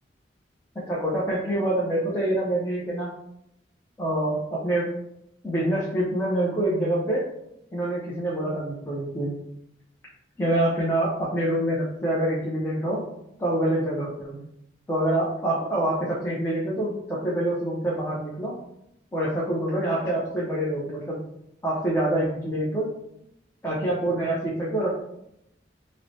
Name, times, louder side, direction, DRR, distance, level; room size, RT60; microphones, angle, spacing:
voice 1, 0.9-3.1 4.0-4.9 5.4-7.2 7.7-9.3 10.4-13.0 13.4-14.4 14.9-18.5 19.1-21.2 21.6-22.9 23.6-25.0, right 1 dB, 15° left, -7 dB, 0.5 m, -26 dB
4.6 x 2.1 x 2.6 m, 0.80 s
head